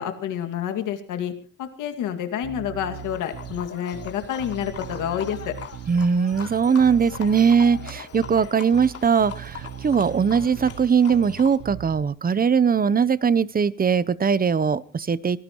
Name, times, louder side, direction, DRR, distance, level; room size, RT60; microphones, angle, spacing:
voice 1, 0.0-1.3 1.6-5.6, left 9 dB, 90° left, 6 dB, 2.2 m, -29 dB
Bass guitar, 2.4-12.0, right 10 dB, 75° right, 1.0 m, -39 dB
Livestock farm animals working animals, 2.9-11.6, left 7 dB, 50° left, 2.9 m, -41 dB
voice 2, 5.9-15.4, right 6 dB, 30° right, 19 dB, 0.8 m, -20 dB
24.5 x 17.5 x 3.1 m, 0.39 s
cardioid pair, 90°, 30 cm